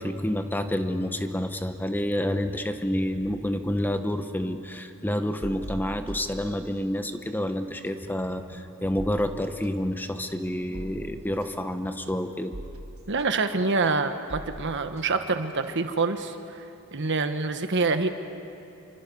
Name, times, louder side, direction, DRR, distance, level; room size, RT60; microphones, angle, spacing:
voice 1, 0.0-12.5, left 1 dB, 10° left, 8 dB, 1.0 m, -29 dB
sound 1, 5.4-7.1 7.4-16.1, right 1 dB, 85° right, 1.6 m, -43 dB
voice 2, 13.1-16.6 16.9-18.1, right 3 dB, 60° right, 8 dB, 1.2 m, -26 dB
28.5 x 24.5 x 5.4 m, 2.7 s
head